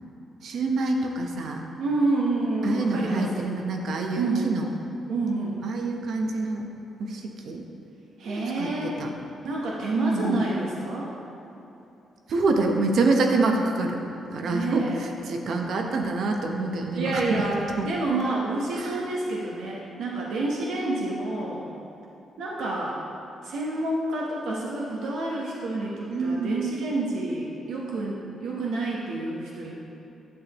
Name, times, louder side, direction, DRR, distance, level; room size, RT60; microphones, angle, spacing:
voice 1, 0.4-1.6 2.6-4.7 5.6-6.7 7.0-7.7 8.2-9.1 10.0-10.4 12.3-14.0 14.3-17.4 17.8-17.9 18.8-19.0 26.1-26.6, right 3 dB, 60° right, 2 dB, 0.9 m, -26 dB
voice 2, 1.8-3.5 4.2-4.5 5.1-5.6 8.2-9.0 9.4-11.1 14.5-15.0 16.9-21.6 22.4-23.0 23.4-29.7, right 2 dB, 85° right, -4 dB, 1.0 m, -28 dB
10.5 x 7.9 x 3.0 m, 3.0 s
cardioid pair, 155°, 0 cm